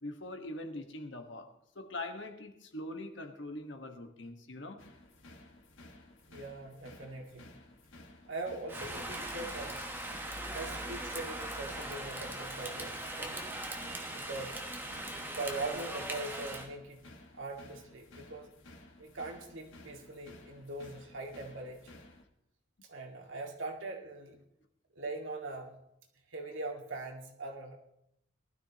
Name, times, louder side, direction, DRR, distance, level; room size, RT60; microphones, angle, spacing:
voice 1, 0.0-4.8 15.2-15.3, left 1 dB, 65° left, 1.4 m, -43 dB
sound 1, 4.8-22.2, left 2 dB, 80° left, 1.5 m, -55 dB
voice 2, 6.3-7.5 8.3-9.9 10.5-13.4 14.1-14.7 15.3-17.0 17.3-18.5 19.0-22.0 22.8-24.4 24.9-25.8 26.3-27.8, right 2 dB, 80° right, 2.0 m, -41 dB
Rain, 8.7-16.7, right 1 dB, 10° right, 1.0 m, -40 dB
19.5 x 12.5 x 2.9 m
head